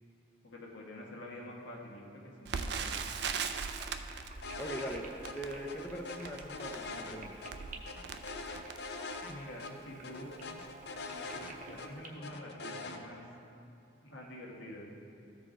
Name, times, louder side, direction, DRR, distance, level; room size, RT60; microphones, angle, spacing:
voice 1, 0.4-3.0 9.2-10.5 11.1-13.2 14.0-14.9, left 1 dB, 75° left, -2 dB, 1.3 m, -47 dB
sound 1, 2.5-12.1, right 4 dB, 40° right, 0.8 m, -52 dB
Crackle, 2.5-9.4 10.0-10.1 10.4-10.7 11.3-11.5 11.8-11.9, right 6 dB, 60° right, 0.4 m, -40 dB
sound 2, 4.4-5.0 5.2-5.3 5.7-7.5 7.9-9.3 9.6-9.7 10.0-11.9 12.2-13.0, left 3 dB, 60° left, 0.5 m, -42 dB
voice 2, 4.6-5.1 5.3-7.4, right 1 dB, 10° left, -1 dB, 0.5 m, -41 dB
14.0 x 4.7 x 3.8 m, 2.7 s
head